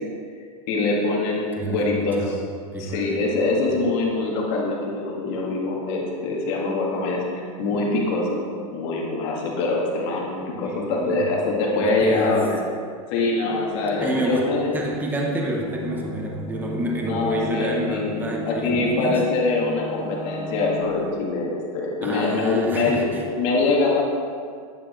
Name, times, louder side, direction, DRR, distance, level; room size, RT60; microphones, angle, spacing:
voice 1, 0.7-2.4 2.8-8.4 8.7-12.6 13.1-14.7 17.1-18.2 18.5-23.0 23.4-24.0, left 3 dB, 55° left, -2 dB, 1.8 m, -24 dB
voice 2, 1.6-2.4 2.7-3.3 10.5-11.3 11.8-12.4 14.0-19.2 22.0-23.3, right 1 dB, 10° right, -1 dB, 0.8 m, -28 dB
sound 1, 13.4-21.1, left 1 dB, 35° right, 1.3 m, -36 dB
9.8 x 6.0 x 3.2 m, 2.1 s
supercardioid pair, 135°, 19 cm